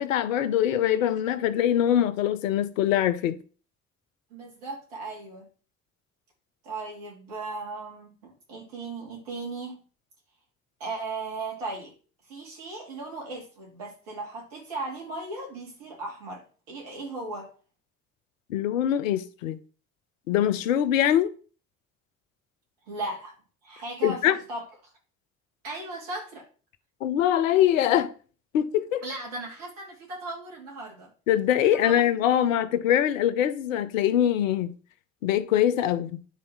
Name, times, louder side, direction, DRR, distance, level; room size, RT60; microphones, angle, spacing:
voice 1, 0.0-3.3 18.5-19.6 20.3-21.3 24.0-24.4 27.0-28.1 28.5-29.0 31.3-34.7 35.2-36.2, left 11 dB, 85° left, 0.7 m, -23 dB
voice 2, 4.3-5.5 6.6-9.8 10.8-11.9 12.3-17.5 22.9-23.3 23.6-24.6 25.6-26.4 29.0-31.1 31.7-32.1 32.4-32.6, right 2 dB, 80° right, 3.2 m, -37 dB
10.0 x 4.0 x 5.8 m
hypercardioid pair, 45°, 38 cm